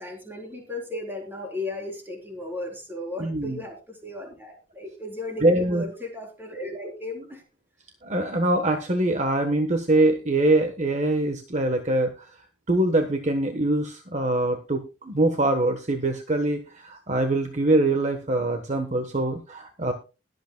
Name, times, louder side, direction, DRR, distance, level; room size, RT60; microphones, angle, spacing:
voice 1, 0.0-7.4, left 2 dB, 10° right, 0 dB, 3.8 m, -36 dB
voice 2, 3.2-3.6 5.4-5.8 8.0-12.3 12.7-19.9, right 2 dB, 40° right, 5 dB, 1.1 m, -23 dB
21.0 x 8.1 x 2.2 m, 0.31 s
head